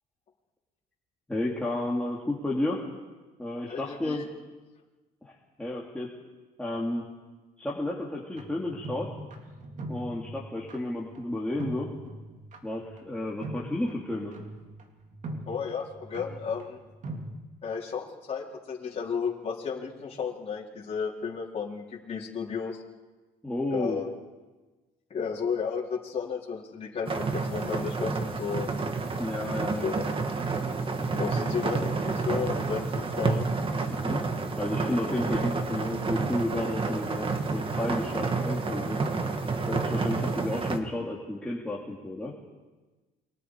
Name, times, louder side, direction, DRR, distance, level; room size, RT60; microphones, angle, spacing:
voice 1, 1.3-2.8 3.4-4.2 5.2-6.1 6.6-7.0 7.6-9.1 9.9-11.9 12.6-14.3 23.4-24.0 29.2-29.9 33.9-34.2 34.6-39.0 39.7-42.3, left 1 dB, 5° left, -5 dB, 3.4 m, -32 dB
voice 2, 3.7-4.3 15.5-16.8 17.6-22.8 23.7-24.1 25.1-28.7 29.8-30.0 31.1-33.5, left 6 dB, 35° left, -4 dB, 4.3 m, -33 dB
sound 1, 8.3-17.4, right 1 dB, 45° right, 3.2 m, -41 dB
sound 2, 27.1-40.8, right 4 dB, 30° right, 2.2 m, -29 dB
29.0 x 24.0 x 5.0 m, 1.2 s
cardioid pair, 110°, 17 cm